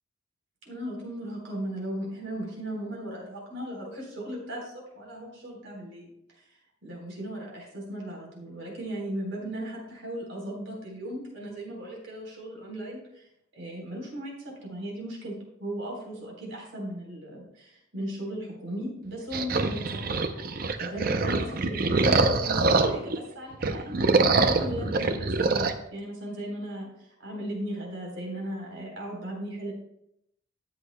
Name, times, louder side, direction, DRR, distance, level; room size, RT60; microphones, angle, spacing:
voice 1, 0.7-6.1 6.8-13.2 13.5-15.3 15.6-19.8 20.8-29.7, equal, 90° right, -1 dB, 3.7 m, -37 dB
sound 1, 19.3-23.2 23.5-25.7, right 3 dB, 50° right, 0.6 m, -24 dB
13.0 x 8.5 x 2.2 m, 0.78 s
head